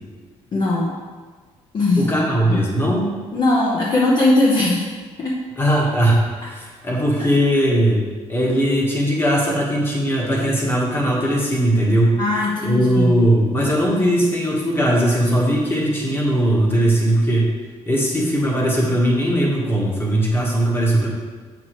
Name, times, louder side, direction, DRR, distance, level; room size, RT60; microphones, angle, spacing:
voice 1, 0.5-1.0 1.7-2.1 2.5-2.7 3.3-4.9 5.2-5.4 12.2-13.3, left 2 dB, 40° left, -4 dB, 0.9 m, -19 dB
voice 2, 2.0-3.1 5.6-8.0 8.3-12.2 12.6-17.5 17.9-21.1, right 1 dB, 20° left, -3 dB, 1.4 m, -19 dB
7.6 x 6.0 x 3.1 m, 1.5 s
cardioid pair, 150°, 12 cm